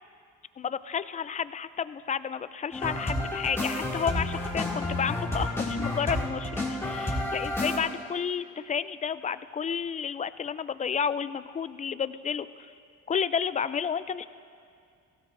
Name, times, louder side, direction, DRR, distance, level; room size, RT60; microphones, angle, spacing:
voice 1, 0.6-12.7 13.1-14.2, left 7 dB, 25° left, 15 dB, 0.3 m, -31 dB
sound 1, 2.7-7.8, left 1 dB, 10° left, 2.3 m, -30 dB
17.5 x 16.0 x 2.6 m, 2.4 s
cardioid pair, 90°, 30 cm